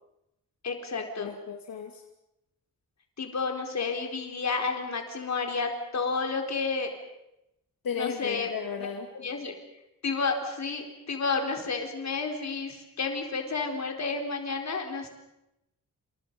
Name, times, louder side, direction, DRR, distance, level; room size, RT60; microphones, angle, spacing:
voice 1, 0.6-1.3 3.2-6.9 7.9-8.5 8.8-8.9 9.1-9.5 10.0-15.1, left 4 dB, 50° left, 4 dB, 4.2 m, -31 dB
voice 2, 1.2-2.0 7.8-9.1, left 6 dB, 75° left, 3 dB, 2.6 m, -35 dB
29.0 x 27.5 x 5.4 m, 0.88 s
wide cardioid pair, 160°, 35 cm